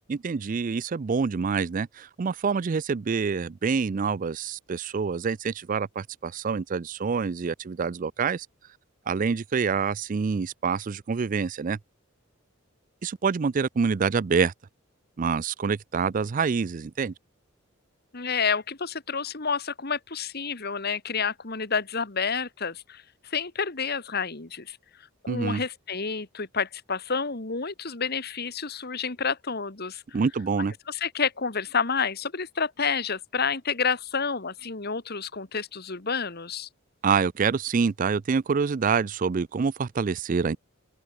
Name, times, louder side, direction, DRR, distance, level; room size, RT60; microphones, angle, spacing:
voice 1, 0.1-8.5 9.1-11.8 13.0-14.5 15.2-17.1 25.3-25.6 30.1-30.7 37.0-40.6, right 5 dB, 40° right, 0.4 m, -26 dB
voice 2, 18.1-24.8 25.2-30.0 30.9-36.7, left 5 dB, 50° left, 1.8 m, -29 dB
open air
head